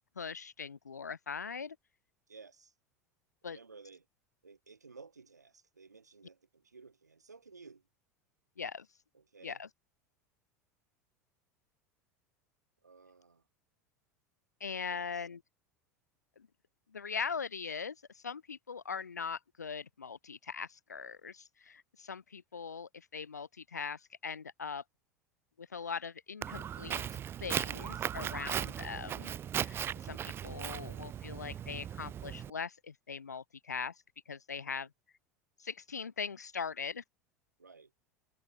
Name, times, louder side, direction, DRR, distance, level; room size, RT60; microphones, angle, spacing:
voice 1, 0.2-1.8 3.4-3.6 8.6-8.9 9.4-9.7 14.6-15.4 16.4-16.5 16.9-24.8 25.6-27.0 27.4-34.9 35.6-37.0, left 6 dB, 80° left, 0.5 m, -41 dB
voice 2, 2.3-2.7 3.4-4.1 4.4-7.9 9.1-9.6 12.8-13.4 14.9-15.3 34.7-34.9 37.6-37.9, right 4 dB, 80° right, 5.3 m, -55 dB
Walk footsteps, 26.4-32.5, right 9 dB, 25° right, 0.5 m, -38 dB
figure-of-eight pair, 75°, 9 cm